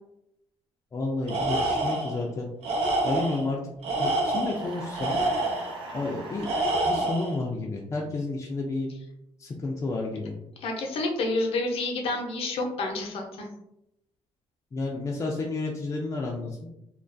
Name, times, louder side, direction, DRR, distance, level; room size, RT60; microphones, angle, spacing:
voice 1, 0.9-2.5 3.0-5.2 5.9-6.5 6.9-8.9 9.4-10.4 14.7-16.6, left 2 dB, 30° left, -2 dB, 0.4 m, -31 dB
Tools, 1.3-2.2 2.6-3.4 3.8-5.7 6.4-7.4, right 2 dB, 80° right, 0.6 m, -27 dB
sound 1, 4.5-6.8, right 3 dB, 55° right, 0.9 m, -39 dB
voice 2, 10.6-13.5, left 2 dB, 70° left, 1 dB, 0.6 m, -29 dB
2.3 x 2.2 x 2.5 m, 0.83 s
cardioid pair, 95°, 10 cm